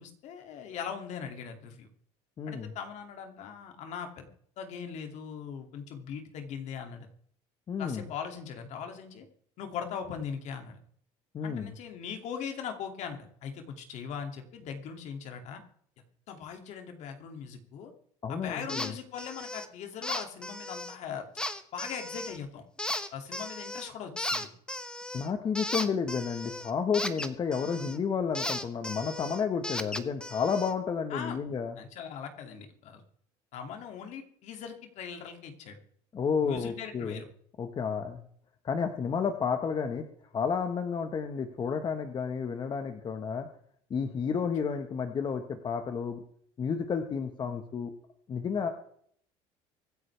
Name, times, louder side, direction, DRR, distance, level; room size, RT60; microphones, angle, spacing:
voice 1, 0.0-1.9 2.5-4.3 4.6-7.1 7.8-9.3 9.6-10.8 11.4-15.6 16.3-17.9 18.3-21.3 21.7-22.6 23.1-24.5 31.1-31.4 31.8-33.0 33.5-35.8 36.4-37.3, left 7 dB, 60° left, 5 dB, 2.5 m, -40 dB
voice 2, 2.4-2.7 7.7-8.1 11.3-11.7 18.2-18.9 25.1-31.8 36.1-37.2 37.6-38.2 38.6-40.1 40.3-43.5 43.9-46.2 46.6-47.9 48.3-48.7, left 6 dB, 35° left, 6 dB, 1.3 m, -31 dB
sound 1, 18.7-18.9 19.2-19.7 20.0-20.9 21.4-22.4 22.8-23.9 24.2-28.0 28.3-30.7, left 1 dB, 5° left, 1.1 m, -36 dB
24.5 x 9.7 x 3.4 m, 0.62 s
cardioid pair, 115°, 13 cm